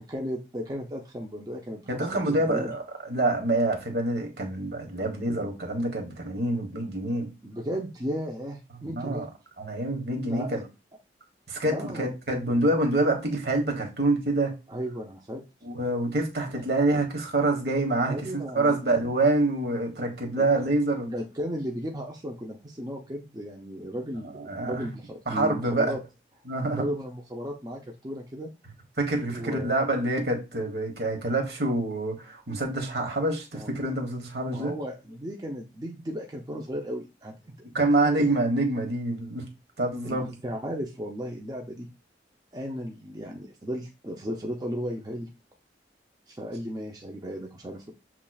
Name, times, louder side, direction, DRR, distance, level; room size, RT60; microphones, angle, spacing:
voice 1, 0.0-2.7 7.4-9.3 10.2-10.5 11.6-12.1 14.7-15.4 16.5-16.6 18.0-18.8 20.3-20.5 21.1-26.0 26.8-28.5 29.3-29.7 33.5-33.7 34.5-38.3 40.0-41.9 42.5-45.3 46.3-47.9, equal, 20° right, 0.6 m, -35 dB
voice 2, 1.9-7.3 8.8-9.3 9.6-10.6 11.5-14.5 15.6-21.1 24.5-24.8 25.3-25.9 26.5-26.8 29.0-34.7 37.7-39.4 39.8-40.3, right 2 dB, 65° right, 1.3 m, -26 dB
7.1 x 3.1 x 2.3 m
head